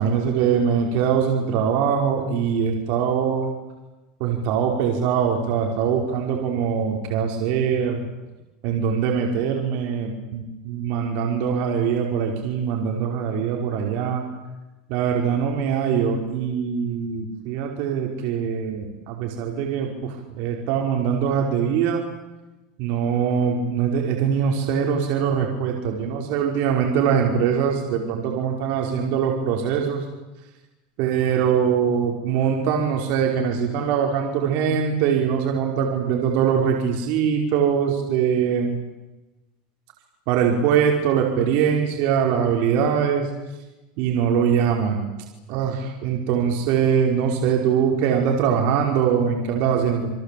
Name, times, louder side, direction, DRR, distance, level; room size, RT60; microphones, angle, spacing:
voice 1, 0.0-3.5 4.2-8.0 8.6-14.3 14.9-22.0 22.8-30.0 31.0-38.8 40.3-43.3 44.0-45.1 45.5-50.1, right 7 dB, 55° right, 2 dB, 5.2 m, -22 dB
29.5 x 23.5 x 8.7 m, 1.1 s
supercardioid pair, 140°, 4 cm